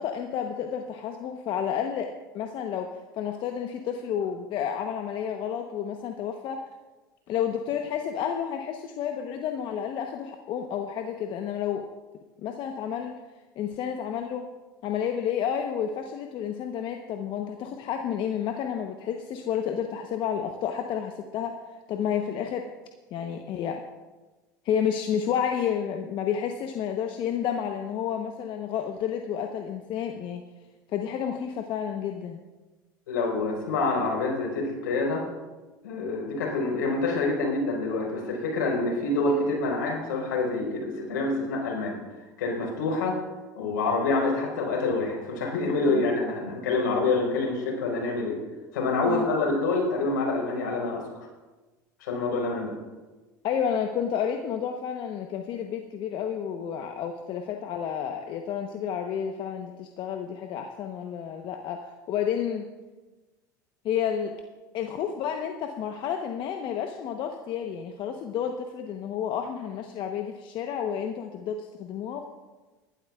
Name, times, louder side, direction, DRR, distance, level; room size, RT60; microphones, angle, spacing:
voice 1, 0.0-6.6 7.3-11.9 12.4-13.2 13.6-14.5 14.8-22.6 23.1-23.8 24.6-30.4 30.9-32.4 45.9-46.0 49.1-49.3 53.4-62.7 63.8-64.3 64.7-72.2, left 8 dB, 50° left, 4 dB, 1.0 m, -30 dB
voice 2, 33.1-35.3 35.8-42.0 42.4-43.2 43.6-48.4 48.7-51.0 52.0-52.8, left 3 dB, 80° left, 0 dB, 4.4 m, -27 dB
20.5 x 12.0 x 2.4 m, 1.2 s
hypercardioid pair, 85°, 10 cm